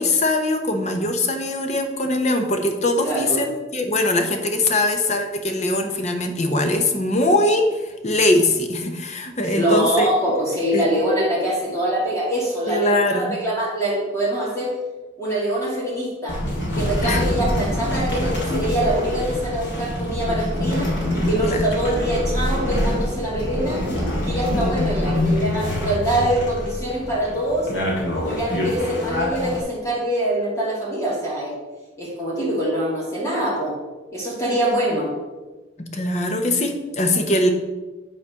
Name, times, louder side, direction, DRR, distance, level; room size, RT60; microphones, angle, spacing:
voice 1, 0.0-10.1 10.7-10.9 12.7-13.4 17.0-17.3 21.4-21.7 24.5-24.8 28.5-28.6 35.8-37.5, left 1 dB, 35° left, 5 dB, 1.0 m, -22 dB
voice 2, 3.0-3.4 9.6-14.7 15.2-16.4 16.7-23.8 24.1-27.7 28.1-31.5 32.0-33.7 34.1-35.1, right 1 dB, 15° left, -6 dB, 2.5 m, -24 dB
sound 1, 16.3-29.6, left 1 dB, 75° left, 2.6 m, -25 dB
9.8 x 4.1 x 6.3 m, 1.2 s
head